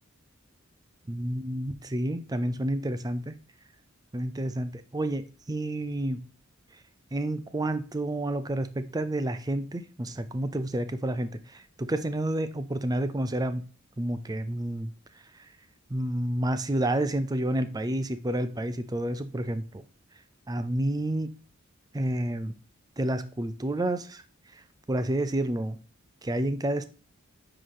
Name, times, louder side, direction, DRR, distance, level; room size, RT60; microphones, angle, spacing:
voice 1, 1.1-3.4 4.1-6.2 7.1-13.7 14.0-14.9 15.9-19.8 20.5-21.4 21.9-22.5 23.0-24.2 24.9-25.8 26.2-26.8, right 1 dB, 20° right, 0.5 m, -29 dB
9.5 x 3.3 x 3.8 m
head